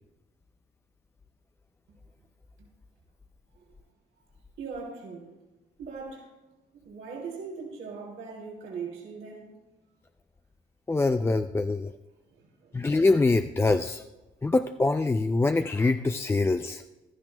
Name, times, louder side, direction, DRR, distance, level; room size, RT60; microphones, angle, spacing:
voice 1, 4.6-5.3 5.8-6.3 6.7-9.5 12.3-12.7, right 5 dB, 85° right, -3 dB, 2.9 m, -40 dB
voice 2, 10.9-11.9 12.7-14.0 14.4-16.8, left 3 dB, 15° left, 8 dB, 0.3 m, -24 dB
16.0 x 12.0 x 2.2 m, 1.1 s
cardioid pair, 90°, 20 cm